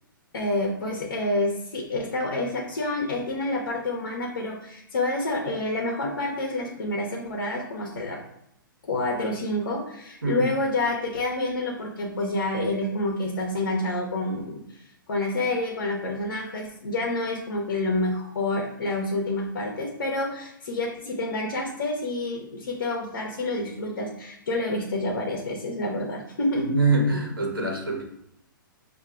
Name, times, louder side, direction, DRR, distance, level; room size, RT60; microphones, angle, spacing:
voice 1, 0.3-8.2 8.8-26.8, left 2 dB, 60° left, 0 dB, 0.8 m, -28 dB
voice 2, 26.7-28.0, right 3 dB, 80° right, -2 dB, 1.2 m, -24 dB
6.4 x 2.7 x 2.4 m, 0.77 s
figure-of-eight pair, 115°, 11 cm